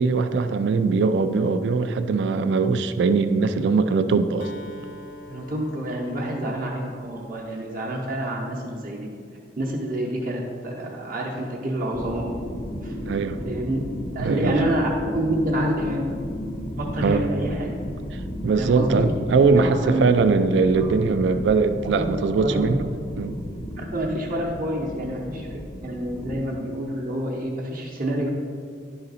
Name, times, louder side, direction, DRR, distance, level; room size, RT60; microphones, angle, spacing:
voice 1, 0.0-4.5 12.9-13.4 14.2-14.6 17.0-17.3 18.4-22.9 23.2-23.4, right 4 dB, 70° right, 11 dB, 0.3 m, -21 dB
Acoustic guitar, 4.4-8.3, left 1 dB, 80° left, 0.6 m, -45 dB
voice 2, 5.3-9.1 9.6-12.3 12.8-12.9 13.5-13.9 14.1-16.1 16.8-17.7 18.6-19.1 19.4-20.3 20.7-20.9 21.8-22.6 23.8-28.3, right 1 dB, 50° right, -3 dB, 0.8 m, -28 dB
sound 1, 11.9-26.4, equal, 25° left, 0.4 m, -34 dB
10.5 x 3.9 x 4.1 m, 2.2 s
head